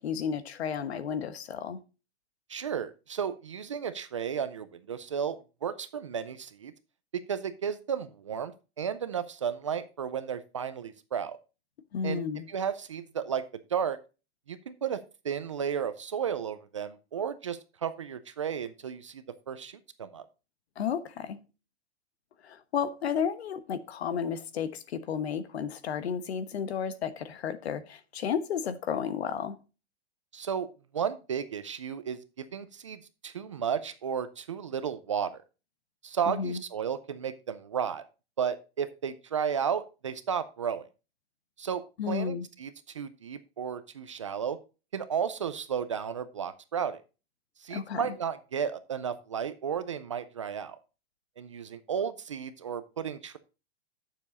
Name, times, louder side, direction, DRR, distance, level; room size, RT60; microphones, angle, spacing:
voice 1, 0.0-1.8 11.9-12.5 20.8-21.4 22.4-29.6 36.3-36.6 42.0-42.5 47.7-48.0, left 7 dB, 70° left, 1.2 m, -32 dB
voice 2, 2.5-6.7 7.1-8.5 8.8-11.4 12.0-12.2 12.5-13.4 13.7-14.0 14.5-15.0 15.2-20.2 30.3-30.7 30.9-35.4 36.0-38.0 38.4-40.9 41.6-44.6 44.9-47.0 47.6-50.8 51.4-53.4, right 7 dB, 30° right, 0.4 m, -33 dB
9.6 x 7.0 x 4.0 m
hypercardioid pair, 175°, 33 cm